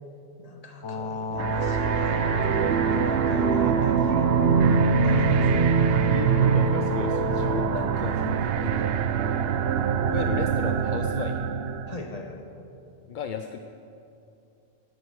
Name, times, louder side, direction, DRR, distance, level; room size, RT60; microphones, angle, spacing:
voice 1, 0.4-2.6 2.9-4.6 5.0-5.6 11.9-12.5, left 1 dB, 35° left, 3 dB, 1.4 m, -41 dB
sound 1, 0.8-7.6, left 5 dB, 80° left, 1.3 m, -31 dB
sound 2, 1.3-12.0, right 7 dB, 65° right, 0.8 m, -23 dB
voice 2, 6.0-8.9 10.0-11.5 13.1-13.6, left 7 dB, 55° left, 7 dB, 0.6 m, -34 dB
16.0 x 9.9 x 6.3 m, 2.7 s
omnidirectional pair, 1.2 m